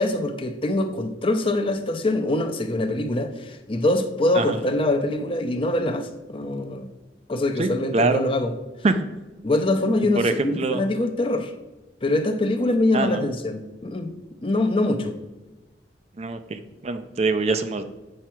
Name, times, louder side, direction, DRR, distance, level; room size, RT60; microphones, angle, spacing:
voice 1, 0.0-6.9 7.3-8.5 9.4-11.5 12.0-14.1 14.4-15.2, left 2 dB, 30° left, 0.6 m, -24 dB
voice 2, 7.6-8.3 8.8-8.9 10.2-10.8 12.9-13.3 16.2-17.8, right 3 dB, 35° right, 0.4 m, -24 dB
7.7 x 4.5 x 4.4 m
head